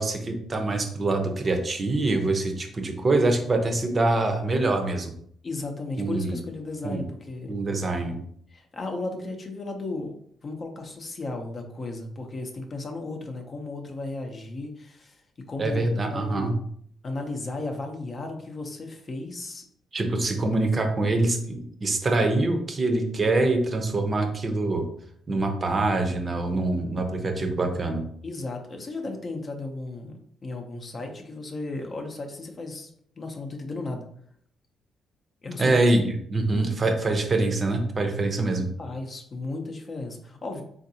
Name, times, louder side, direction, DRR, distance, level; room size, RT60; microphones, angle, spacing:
voice 1, 0.0-5.1 6.0-6.4 6.8-7.0 7.5-8.2 15.6-16.5 19.9-24.8 25.3-28.0 35.6-38.7, right 2 dB, 35° right, 4 dB, 0.6 m, -24 dB
voice 2, 5.4-7.6 8.5-10.1 10.4-15.2 15.5-16.6 17.0-19.6 28.2-32.9 33.2-34.1 35.4-35.8 38.8-40.6, left 2 dB, 40° left, 4 dB, 0.6 m, -35 dB
3.6 x 2.5 x 2.7 m, 0.66 s
cardioid pair, 90°, 0 cm